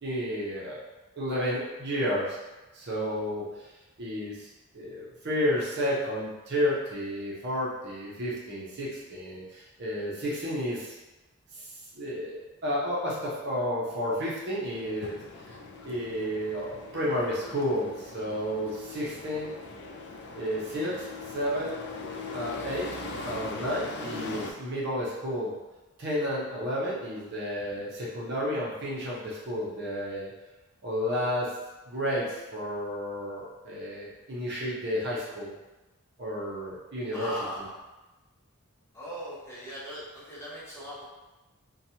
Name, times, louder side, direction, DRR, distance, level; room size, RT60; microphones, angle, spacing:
voice 1, 0.0-0.8 1.2-2.4 2.7-3.7 4.0-4.5 4.7-11.0 11.5-11.6 11.9-15.2 15.8-19.5 20.3-21.7 22.3-22.9 23.2-25.6 26.0-30.3 30.8-31.5 31.9-35.5 36.2-37.7, equal, 50° right, -6 dB, 0.7 m, -31 dB
sound 1, 14.7-24.5, left 3 dB, 55° left, 0.3 m, -40 dB
voice 2, 37.1-37.7 38.9-41.0, equal, 15° left, -9 dB, 0.8 m, -39 dB
2.9 x 2.2 x 2.8 m, 1.1 s
head